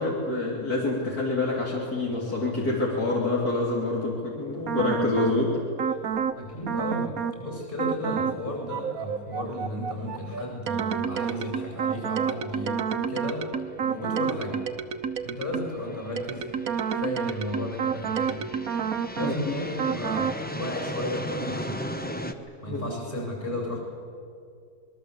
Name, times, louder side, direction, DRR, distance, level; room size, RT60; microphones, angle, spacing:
voice 1, 0.0-5.6 5.8-6.0 19.2-19.5 22.7-22.8, left 2 dB, 70° left, -3 dB, 3.8 m, -27 dB
sound 1, 4.7-5.4 5.8-6.4 6.7-7.4 7.8-8.4 8.7-15.8 16.2-19.4 19.8-20.4, right 7 dB, 65° right, 1.5 m, -29 dB
sound 2, 6.2-6.3 6.6-6.7 10.8-10.9 11.9-12.1 12.8-22.3, equal, 5° left, 1.1 m, -38 dB
voice 2, 6.3-13.5 13.8-14.7 15.2-16.4 16.9-18.5 19.1-21.8 22.6-23.8, left 1 dB, 35° left, -1 dB, 7.7 m, -34 dB
26.0 x 21.5 x 8.4 m, 2.4 s
omnidirectional pair, 1.7 m